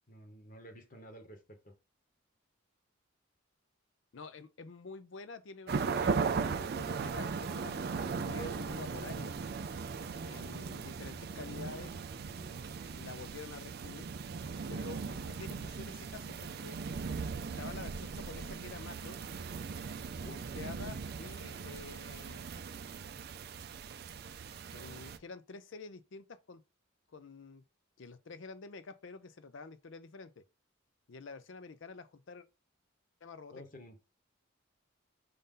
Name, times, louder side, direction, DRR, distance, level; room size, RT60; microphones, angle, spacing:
voice 1, 0.1-1.8 20.2-20.4 33.5-34.0, equal, 40° left, 1.1 m, -52 dB
voice 2, 4.1-9.4 10.2-12.5 12.9-14.1 14.7-16.8 17.6-19.2 20.2-22.5 24.7-26.6 27.1-27.6 28.0-30.4 31.1-32.5 33.2-33.6, left 4 dB, 65° left, 0.5 m, -48 dB
sound 1, 5.7-25.2, right 5 dB, 50° right, 0.4 m, -38 dB
5.3 x 2.7 x 3.7 m
head